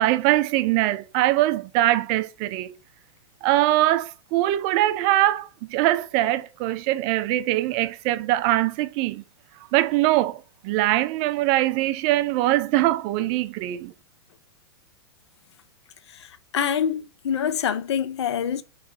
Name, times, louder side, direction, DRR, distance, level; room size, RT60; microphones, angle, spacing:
voice 1, 0.0-2.7 3.4-9.2 9.7-13.9, right 15 dB, 40° right, 0.4 m, -22 dB
voice 2, 16.5-18.6, left 8 dB, 75° left, 0.6 m, -25 dB
3.5 x 3.1 x 4.1 m
hypercardioid pair, 125°, 14 cm